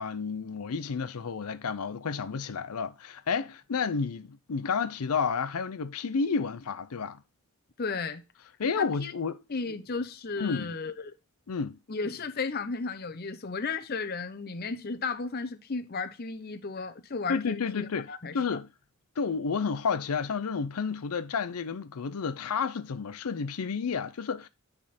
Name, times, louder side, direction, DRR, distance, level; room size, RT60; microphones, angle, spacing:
voice 1, 0.0-7.2 8.6-9.4 10.4-10.7 11.5-11.8 17.3-18.7 19.2-24.5, left 5 dB, 85° left, 0.6 m, -31 dB
voice 2, 7.8-8.2 8.8-9.1 9.5-11.1 11.9-18.4, left 4 dB, 45° left, 0.7 m, -34 dB
9.0 x 3.6 x 4.1 m
head